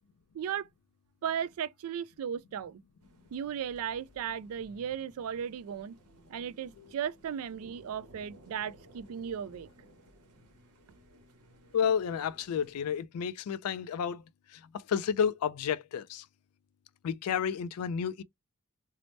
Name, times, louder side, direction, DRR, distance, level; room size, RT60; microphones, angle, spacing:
voice 1, 1.2-2.8 3.3-6.0 6.3-9.7, right 8 dB, 65° right, 0.3 m, -36 dB
sound 1, 3.0-13.0, right 1 dB, 85° right, 0.9 m, -58 dB
voice 2, 11.7-14.2 14.9-16.2 17.0-18.2, left 7 dB, 75° left, 0.3 m, -31 dB
2.7 x 2.0 x 3.1 m
head